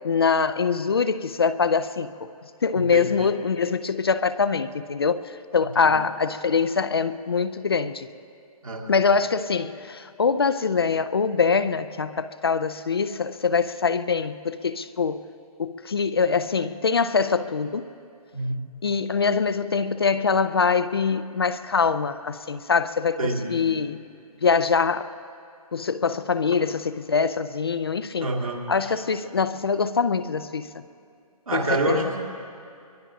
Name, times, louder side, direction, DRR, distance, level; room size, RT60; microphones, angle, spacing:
voice 1, 0.0-2.3 2.6-5.2 5.5-8.1 8.9-15.2 15.6-17.9 18.8-24.0 24.4-25.1 25.7-28.3 28.7-30.8 31.5-32.1, left 5 dB, 40° left, 13 dB, 0.4 m, -24 dB
voice 2, 2.7-3.3 5.8-5.9 8.6-9.0 18.3-18.6 23.2-23.7 28.2-29.0 31.5-32.4, right 2 dB, 65° right, 0 dB, 2.1 m, -28 dB
23.0 x 22.5 x 2.5 m, 2.4 s
figure-of-eight pair, 145°, 19 cm